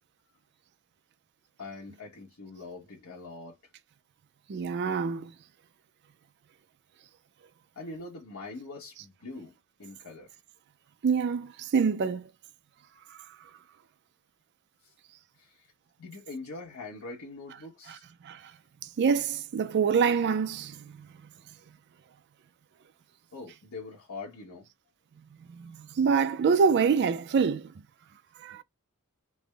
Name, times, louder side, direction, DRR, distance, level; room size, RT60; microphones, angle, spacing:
voice 1, 1.6-3.6 7.8-9.5 9.8-10.3 15.4-15.5 16.0-18.0 23.3-24.7, left 3 dB, 70° left, 1.0 m, -43 dB
voice 2, 4.5-5.3 9.0-9.1 11.0-12.3 17.9-18.0 18.2-18.4 19.0-20.9 25.5-27.7 28.4-28.6, right 6 dB, 50° right, 0.3 m, -26 dB
3.3 x 2.0 x 3.3 m
head